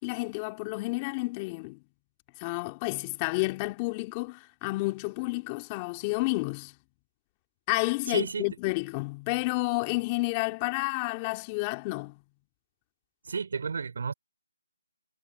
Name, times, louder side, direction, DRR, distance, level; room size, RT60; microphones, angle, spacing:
voice 1, 0.0-1.8 2.4-6.8 7.7-12.2, left 25 dB, 20° left, 2.7 m, -30 dB
voice 2, 8.1-8.5 13.2-14.1, right 5 dB, 60° right, 5.1 m, -32 dB
figure-of-eight pair, 155°, 0 cm